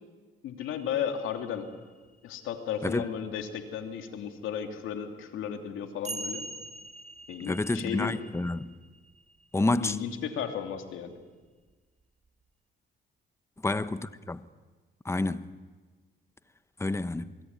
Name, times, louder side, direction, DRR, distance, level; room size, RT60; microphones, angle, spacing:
voice 1, 0.4-1.7 2.2-6.5 7.3-8.1 9.8-11.1, left 8 dB, 85° left, 3.1 m, -34 dB
sound 1, 0.6-2.2 3.4-3.5 4.9-5.0 6.0-10.1 11.7-11.8, right 2 dB, 35° right, 1.9 m, -43 dB
voice 2, 7.5-8.7 9.5-10.0 13.6-14.5 15.0-15.5 16.8-17.3, left 2 dB, 15° left, 1.1 m, -29 dB
28.0 x 21.5 x 9.7 m
cardioid pair, 90°, 20 cm